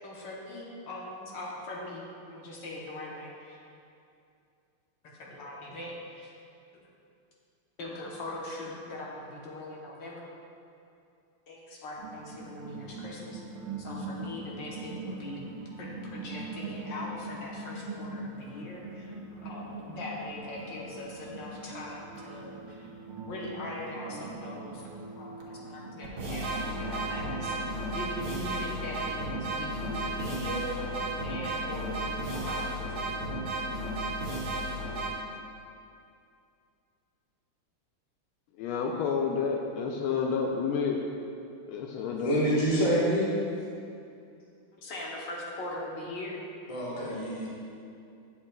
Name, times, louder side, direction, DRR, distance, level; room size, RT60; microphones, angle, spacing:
voice 1, 0.0-3.6 5.0-6.3 7.8-10.2 11.5-13.4 13.8-15.4 15.8-19.1 19.4-22.9 23.2-24.8 25.2-32.8 44.8-46.4, left 1 dB, 65° left, -4 dB, 1.5 m, -41 dB
sound 1, 12.0-30.9, right 2 dB, 85° right, 1.6 m, -42 dB
sound 2, 25.4-25.5 26.0-35.1, right 1 dB, 65° right, 1.1 m, -33 dB
voice 2, 38.6-41.0 41.7-42.6, left 5 dB, 80° left, 1 dB, 1.4 m, -30 dB
voice 3, 42.2-43.4 46.7-47.5, equal, 20° left, -7 dB, 1.0 m, -27 dB
8.5 x 7.1 x 2.2 m, 2.5 s
omnidirectional pair, 2.4 m